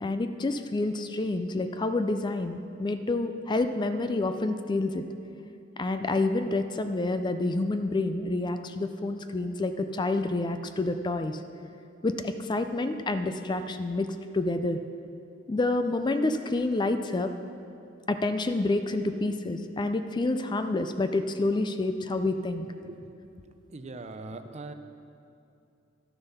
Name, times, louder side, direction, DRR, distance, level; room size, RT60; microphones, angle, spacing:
voice 1, 0.0-5.0 5.8-11.4 12.0-14.8 15.5-17.3 18.1-22.7, left 2 dB, 25° left, 9 dB, 0.4 m, -28 dB
voice 2, 23.7-24.7, right 3 dB, 35° right, 8 dB, 0.5 m, -40 dB
12.5 x 7.0 x 5.5 m, 2.6 s
head